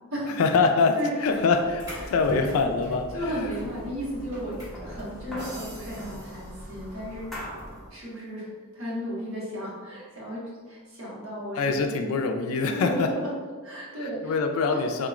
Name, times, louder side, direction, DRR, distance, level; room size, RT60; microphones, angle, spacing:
voice 1, 0.4-3.1 11.6-13.1 14.2-15.1, left 4 dB, 75° left, 5 dB, 0.3 m, -24 dB
sound 1, 1.0-5.8, equal, 15° right, 1.4 m, -47 dB
sound 2, 1.4-7.9, equal, ahead, 0.5 m, -40 dB
voice 2, 3.1-7.3 7.9-10.4 10.7-11.9 12.5-13.3 13.6-14.4 14.7-14.8, equal, 65° right, -7 dB, 1.2 m, -34 dB
sound 3, 5.4-7.4, right 1 dB, 90° right, 1.0 m, -48 dB
3.6 x 3.0 x 2.4 m, 1.5 s
head